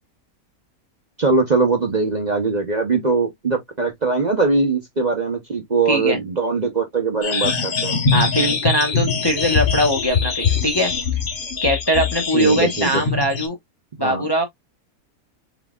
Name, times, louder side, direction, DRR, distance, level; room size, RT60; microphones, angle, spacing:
voice 1, 1.2-8.0 12.3-13.0 14.0-14.2, right 4 dB, 35° right, 0.9 m, -21 dB
voice 2, 5.9-6.2 8.1-10.9 11.6-13.6 14.0-14.4, equal, 20° left, 0.9 m, -21 dB
sound 1, 7.2-13.5, left 5 dB, 40° left, 1.1 m, -22 dB
4.2 x 4.0 x 2.3 m
omnidirectional pair, 1.5 m